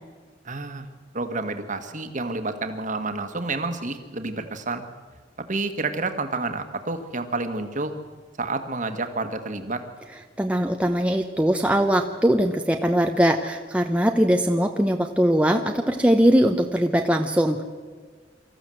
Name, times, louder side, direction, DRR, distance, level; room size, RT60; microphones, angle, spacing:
voice 1, 0.5-0.9 1.1-4.8 5.5-7.9 8.4-9.8, right 3 dB, 45° right, 7 dB, 1.6 m, -29 dB
voice 2, 10.4-17.6, equal, 5° right, 3 dB, 0.9 m, -21 dB
24.5 x 14.0 x 7.8 m, 1.5 s
head